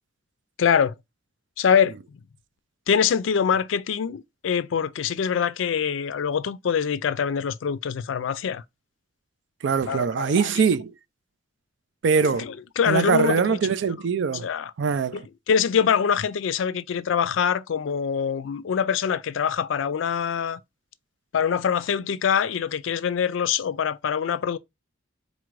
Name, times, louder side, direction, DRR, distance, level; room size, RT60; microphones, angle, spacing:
voice 1, 0.6-0.9 1.6-1.9 2.9-8.6 9.9-10.5 12.3-13.6 14.4-14.7 15.1-20.6 21.3-24.6, left 7 dB, 90° left, 0.4 m, -24 dB
voice 2, 9.6-10.9 12.0-12.5 12.9-14.5 14.8-15.3, right 6 dB, 65° right, 0.4 m, -22 dB
4.0 x 2.5 x 4.6 m
head